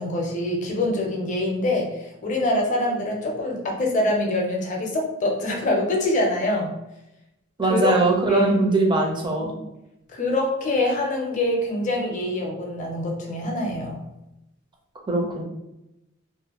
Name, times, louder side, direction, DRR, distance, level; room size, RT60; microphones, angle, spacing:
voice 1, 0.0-6.7 7.7-7.9 8.3-8.6 10.1-14.0, left 1 dB, 40° left, 0 dB, 0.5 m, -25 dB
voice 2, 7.6-9.5 15.1-15.4, right 2 dB, 25° right, 0 dB, 0.5 m, -21 dB
2.5 x 2.1 x 2.8 m, 0.91 s
head